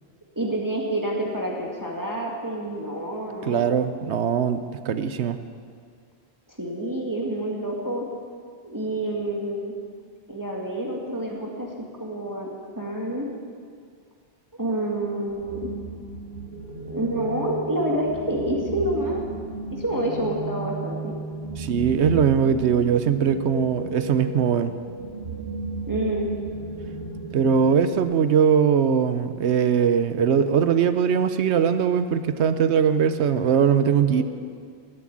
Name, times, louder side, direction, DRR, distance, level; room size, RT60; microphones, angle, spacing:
voice 1, 0.4-3.6 3.9-4.0 6.6-8.1 8.6-9.7 10.3-11.7 12.0-12.5 12.8-13.3 14.6-15.7 16.8-19.2 19.7-21.1 25.9-26.3 34.2-34.3, right 1 dB, 15° right, -2 dB, 1.8 m, -28 dB
voice 2, 3.5-5.4 21.6-24.7 27.3-34.2, right 7 dB, 85° right, 11 dB, 1.0 m, -21 dB
sound 1, 15.3-28.0, right 2 dB, 65° right, 3.5 m, -34 dB
19.5 x 7.8 x 8.6 m, 2.1 s
omnidirectional pair, 1.1 m